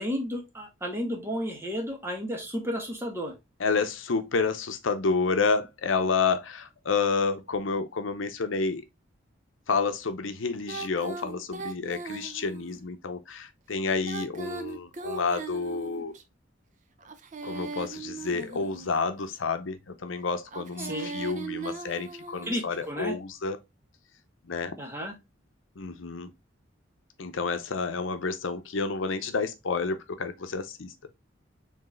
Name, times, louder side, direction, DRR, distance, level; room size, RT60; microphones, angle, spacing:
voice 1, 0.0-3.3 20.8-21.1 22.5-23.1 24.8-25.1, equal, 15° right, 1.3 m, -32 dB
voice 2, 3.6-8.9 9.7-16.1 17.4-23.6 24.5-24.7 25.8-26.3 27.2-30.9, left 4 dB, 85° left, 0.7 m, -29 dB
Female singing, 10.6-12.8 13.9-16.2 17.0-19.2 20.4-22.7, right 4 dB, 40° right, 0.6 m, -39 dB
4.6 x 3.4 x 3.1 m
head